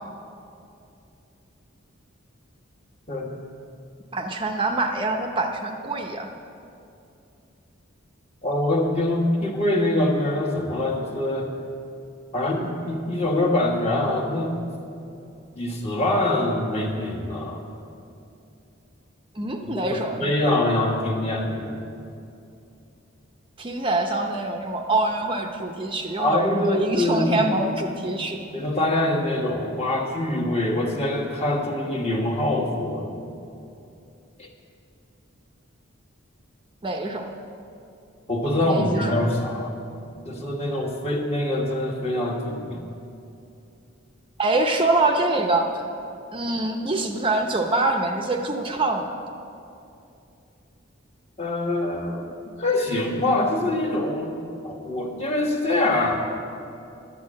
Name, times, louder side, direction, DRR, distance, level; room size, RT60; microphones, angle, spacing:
voice 1, 4.1-6.3 19.4-20.4 23.6-28.4 36.8-37.3 38.7-39.1 44.4-45.8 46.3-49.2, right 2 dB, 25° right, 3 dB, 0.6 m, -25 dB
voice 2, 8.4-11.6 12.3-14.6 15.5-17.6 19.7-21.8 26.2-27.5 28.5-33.2 34.4-34.5 38.3-39.7 40.2-42.8 51.4-52.3 52.6-54.4 54.6-56.2, left 1 dB, 30° left, 0 dB, 1.5 m, -24 dB
11.0 x 8.4 x 7.5 m, 2.7 s
head